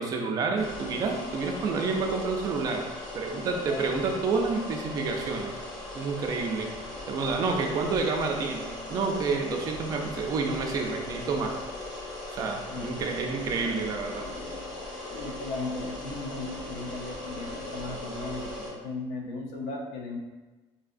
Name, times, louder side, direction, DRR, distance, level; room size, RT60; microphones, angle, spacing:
voice 1, 0.0-2.9 3.1-5.5 5.9-6.7 7.1-11.5 12.3-14.3, right 4 dB, 30° right, 2 dB, 0.4 m, -29 dB
sound 1, 0.6-18.7, left 2 dB, 35° left, 1.4 m, -39 dB
voice 2, 3.4-3.9 12.7-13.0 15.1-20.2, left 3 dB, 80° left, 1 dB, 0.7 m, -36 dB
5.4 x 2.7 x 2.5 m, 1.2 s
cardioid pair, 180°, 13 cm